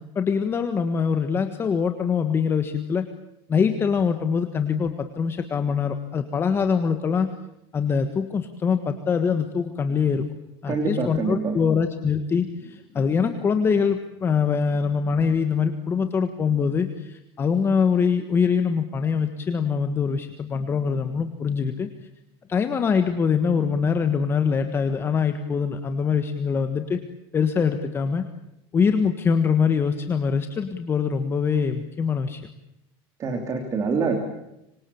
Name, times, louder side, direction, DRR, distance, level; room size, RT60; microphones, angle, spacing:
voice 1, 0.1-3.0 3.5-7.3 7.7-10.3 10.6-21.9 22.5-27.0 27.3-28.2 28.7-32.4, left 6 dB, 15° left, 8 dB, 1.5 m, -23 dB
voice 2, 10.7-11.6 33.2-34.2, right 4 dB, 25° right, 5 dB, 3.2 m, -25 dB
26.5 x 25.5 x 7.1 m, 0.86 s
cardioid pair, 175°, 13 cm